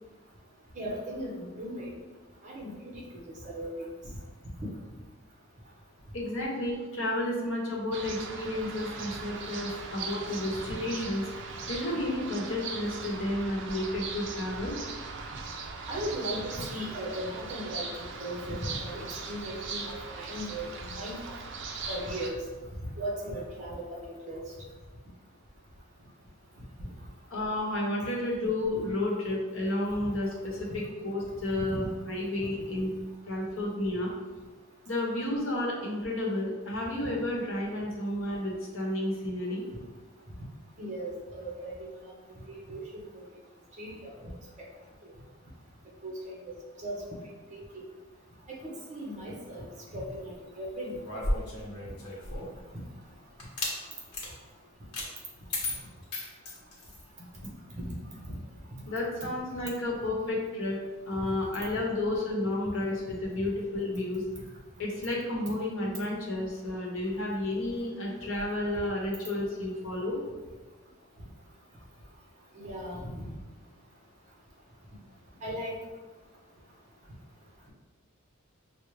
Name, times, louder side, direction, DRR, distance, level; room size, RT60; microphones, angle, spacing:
voice 1, 0.7-1.9 2.4-3.9 15.9-21.2 21.9-22.5 23.0-24.4 26.8-26.9 30.0-30.1 37.0-37.1 40.8-42.1 42.5-42.8 43.1-43.3 43.8-44.3 45.0-45.1 46.0-47.0 47.5-47.8 48.5-51.3 52.7-52.8 57.7-57.9 58.3-58.4 72.6-73.3 75.4-75.8, equal, 35° right, -3 dB, 0.8 m, -38 dB
voice 2, 6.1-11.2 11.7-14.8 27.3-32.9 33.3-34.1 34.9-39.7 58.9-60.8 61.1-64.2 64.8-70.2, left 1 dB, 60° left, -3 dB, 0.9 m, -31 dB
sound 1, 7.9-22.3, right 4 dB, 55° right, 0.4 m, -39 dB
sound 2, 51.0-52.6 53.4-53.8 54.1-54.3 54.9-55.1 55.5-57.0, left 1 dB, 90° left, 0.9 m, -34 dB
4.7 x 2.0 x 3.1 m, 1.3 s
head